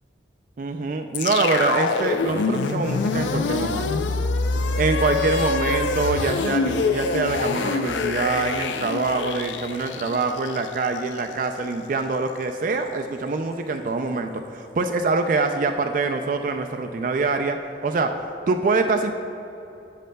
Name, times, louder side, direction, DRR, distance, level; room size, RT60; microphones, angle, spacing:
voice 1, 0.6-3.9 4.8-17.6 17.8-18.1 18.5-19.1, right 3 dB, 45° right, 5 dB, 0.3 m, -24 dB
sound 1, 1.1-11.3, left 4 dB, 85° left, 0.4 m, -25 dB
10.5 x 7.4 x 2.2 m, 3.0 s
head